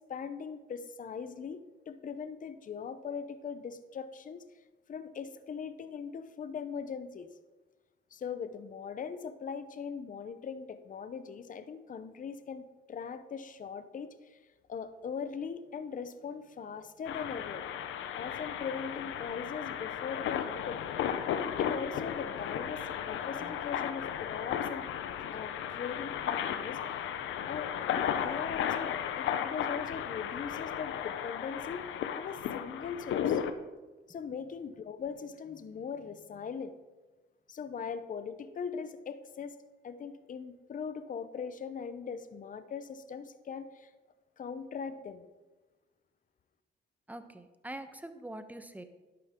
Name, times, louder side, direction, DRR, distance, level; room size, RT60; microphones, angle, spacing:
voice 1, 0.1-4.4 4.9-7.3 8.1-14.4 14.7-17.7 18.1-20.8 21.6-24.9 25.2-26.8 27.5-31.8 32.2-33.4 34.1-36.7 37.5-39.6 39.8-43.9 44.4-45.3, left 6 dB, 40° left, 11 dB, 0.8 m, -40 dB
sound 1, 17.1-33.5, left 9 dB, 80° left, 0.8 m, -35 dB
voice 2, 47.1-48.8, right 1 dB, 10° right, 9 dB, 1.0 m, -44 dB
11.5 x 11.0 x 3.7 m, 1.2 s
cardioid pair, 90°, 20 cm